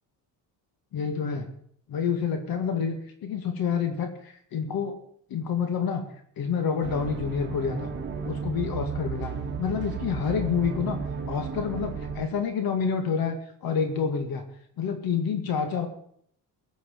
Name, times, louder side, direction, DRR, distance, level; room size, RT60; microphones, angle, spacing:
voice 1, 0.9-1.5 1.9-2.9 3.2-5.0 5.3-6.0 6.4-7.9 8.2-9.3 9.6-11.0 11.3-14.4 14.8-15.9, left 6 dB, 60° left, 6 dB, 2.2 m, -28 dB
sound 1, 6.8-12.3, right 5 dB, 25° right, 2.3 m, -33 dB
18.0 x 6.4 x 7.8 m, 0.64 s
cardioid pair, 110°, 39 cm